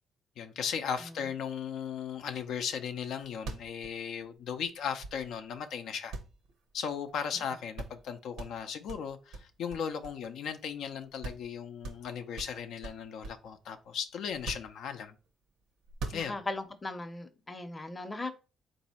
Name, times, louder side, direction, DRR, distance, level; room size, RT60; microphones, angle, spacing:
voice 1, 0.4-6.1 6.7-15.1 16.1-16.4, left 7 dB, 80° left, 0.4 m, -37 dB
sound 1, 3.0-3.1 3.3-5.5 6.1-7.2 7.4-7.5 7.8-8.1 8.4-10.5 10.9-11.0 11.2-11.5 11.8-13.5 14.3-15.3 15.8-16.7, right 3 dB, 85° right, 0.8 m, -43 dB
voice 2, 16.1-18.3, left 2 dB, 20° left, 0.6 m, -38 dB
4.0 x 2.6 x 4.2 m
cardioid pair, 90°, 0 cm